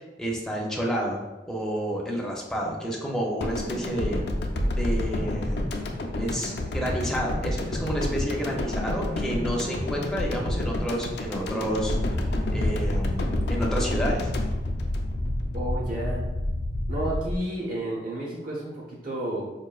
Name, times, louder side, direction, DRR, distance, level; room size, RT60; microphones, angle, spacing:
voice 1, 0.2-4.2 4.7-5.7 6.2-12.3 12.5-14.3, equal, 5° left, -3 dB, 0.5 m, -30 dB
sound 1, 3.4-15.6, left 1 dB, 65° left, 0.4 m, -30 dB
sound 2, 11.8-17.4, left 1 dB, 85° left, 0.9 m, -29 dB
voice 2, 15.5-16.2 16.9-19.4, right 1 dB, 55° right, -4 dB, 0.8 m, -31 dB
4.9 x 2.5 x 2.3 m, 1.1 s
head